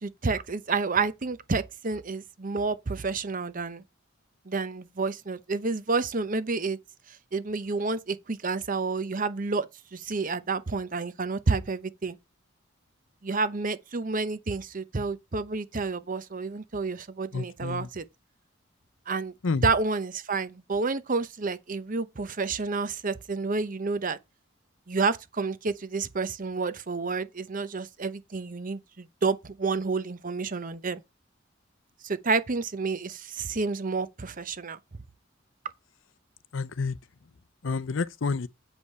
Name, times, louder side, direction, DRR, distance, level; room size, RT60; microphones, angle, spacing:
voice 1, 0.0-3.8 4.5-6.8 7.3-9.7 9.9-12.2 13.2-18.0 19.1-19.3 19.6-24.2 24.9-31.0 32.0-34.8, right 4 dB, 45° right, 0.8 m, -29 dB
voice 2, 17.3-17.9 19.4-19.6 36.5-37.0 37.6-38.5, left 4 dB, 70° left, 0.6 m, -29 dB
8.1 x 5.1 x 5.5 m
head